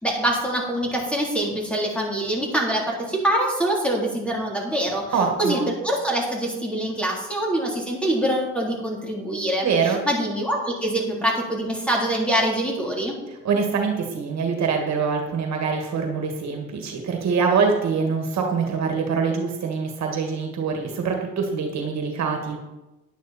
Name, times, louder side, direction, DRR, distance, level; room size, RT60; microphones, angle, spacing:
voice 1, 0.0-5.0 5.4-13.1, right 1 dB, 5° left, -2 dB, 3.4 m, -24 dB
voice 2, 5.1-5.7 9.6-10.0 13.4-22.6, right 5 dB, 65° right, 3 dB, 1.9 m, -24 dB
10.5 x 9.4 x 4.3 m, 1.0 s
cardioid pair, 90°, 30 cm